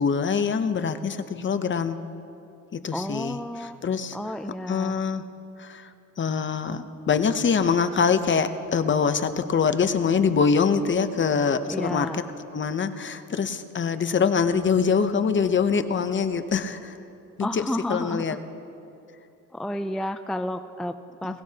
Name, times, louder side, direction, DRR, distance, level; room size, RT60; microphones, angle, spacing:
voice 1, 0.0-2.0 2.7-3.4 3.8-4.2 4.7-5.2 5.6-5.9 6.2-12.1 12.5-17.0 17.4-18.4 21.2-21.4, left 6 dB, 35° left, 10 dB, 0.8 m, -24 dB
voice 2, 2.9-3.8 4.1-5.0 11.7-12.3 17.4-18.4 19.5-21.4, left 1 dB, ahead, 9 dB, 0.3 m, -31 dB
21.0 x 17.5 x 2.9 m, 2.7 s
cardioid pair, 105°, 32 cm